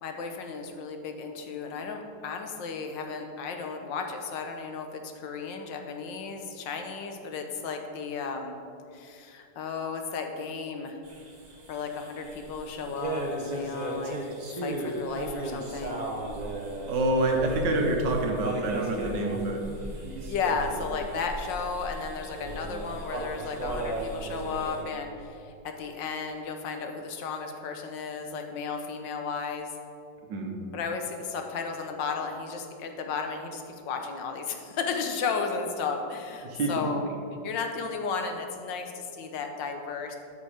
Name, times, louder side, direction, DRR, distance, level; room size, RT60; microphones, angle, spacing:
voice 1, 0.0-8.5 8.9-11.0 11.7-16.0 20.3-29.7 30.7-37.1 37.4-40.2, left 5 dB, 75° left, 4 dB, 1.5 m, -34 dB
sound 1, 11.0-24.8, right 1 dB, 30° right, 0.9 m, -36 dB
voice 2, 16.9-19.8 30.3-30.6 36.4-36.9, right 2 dB, 70° right, 2 dB, 1.8 m, -27 dB
13.0 x 5.3 x 5.0 m, 2.5 s
omnidirectional pair, 2.0 m